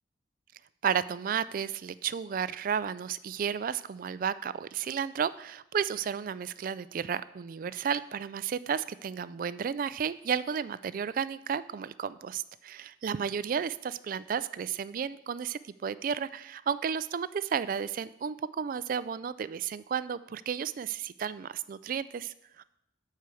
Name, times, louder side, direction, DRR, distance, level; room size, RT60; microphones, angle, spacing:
voice 1, 0.8-22.6, right 7 dB, 45° right, 16 dB, 0.3 m, -33 dB
9.5 x 4.5 x 6.9 m, 0.84 s
head